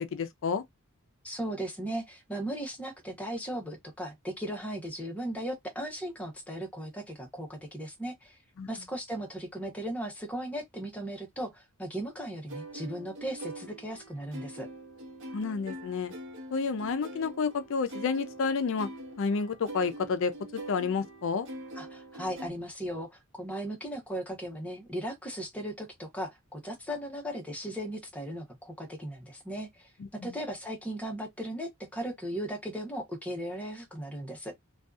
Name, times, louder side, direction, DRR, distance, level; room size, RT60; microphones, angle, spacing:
voice 1, 0.1-0.6 8.6-8.7 15.3-16.1 16.5-18.9 19.2-21.5 30.0-30.1, left 5 dB, 65° left, 0.4 m, -30 dB
voice 2, 1.2-8.4 8.7-14.7 21.7-34.5, right 1 dB, 5° left, 0.7 m, -37 dB
sound 1, 12.5-22.5, right 1 dB, 60° right, 0.8 m, -44 dB
2.6 x 2.3 x 2.3 m
head